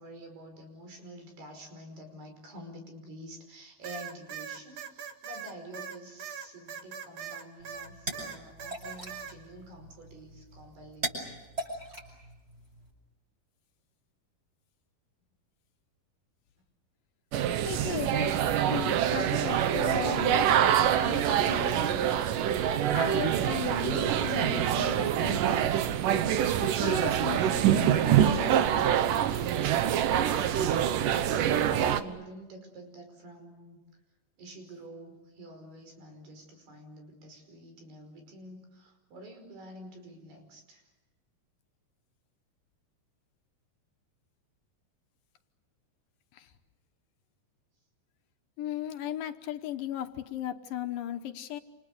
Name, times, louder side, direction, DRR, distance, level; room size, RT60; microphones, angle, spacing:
voice 1, 0.0-11.2 31.4-33.8 34.4-40.9, right 1 dB, 85° right, 5 dB, 7.3 m, -48 dB
sound 1, 3.8-7.9 8.1-9.3, right 8 dB, 50° right, 2.7 m, -41 dB
sound 2, 7.6-12.9, right 1 dB, 15° right, 7.5 m, -41 dB
sound 3, 17.3-32.0, right 10 dB, 70° right, 2.4 m, -25 dB
voice 2, 17.7-22.0 22.9-25.7 26.6-28.8 46.3-46.5 48.6-51.6, left 11 dB, 70° left, 7 dB, 2.5 m, -37 dB
28.5 x 28.5 x 6.7 m, 1.0 s
omnidirectional pair, 4.5 m